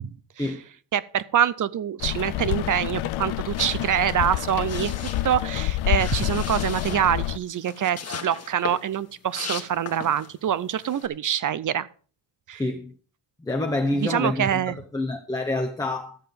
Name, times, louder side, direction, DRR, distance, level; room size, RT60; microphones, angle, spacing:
voice 1, 0.9-11.9 12.5-12.6 13.9-14.7, right 10 dB, 40° right, 0.5 m, -25 dB
Rain, 2.0-7.4, left 16 dB, 70° left, 0.6 m, -28 dB
sound 1, 3.5-10.4 10.7-11.1, left 5 dB, 30° left, 1.4 m, -38 dB
voice 2, 12.5-12.9 13.4-16.2, left 2 dB, 10° left, 0.7 m, -27 dB
12.5 x 7.6 x 5.1 m
cardioid pair, 165°, 49 cm